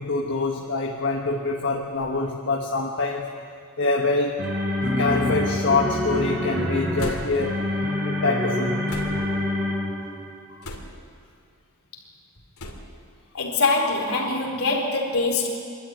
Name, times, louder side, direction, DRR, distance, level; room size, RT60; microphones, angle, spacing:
voice 1, 0.0-3.3 3.8-4.4 5.0-7.7 8.0-8.8, left 3 dB, 55° left, 0 dB, 1.4 m, -25 dB
sound 1, 1.9-2.2 3.0-3.1 4.3-4.6 4.8-5.4 7.0-7.5 8.9-9.4 10.6-11.1 12.6-13.0, left 1 dB, 90° left, 2.8 m, -38 dB
sound 2, 3.8-10.2, left 1 dB, 55° right, 5.5 m, -26 dB
voice 2, 13.3-15.5, left 3 dB, 70° left, 0 dB, 4.1 m, -23 dB
25.5 x 12.5 x 9.5 m, 2.3 s
head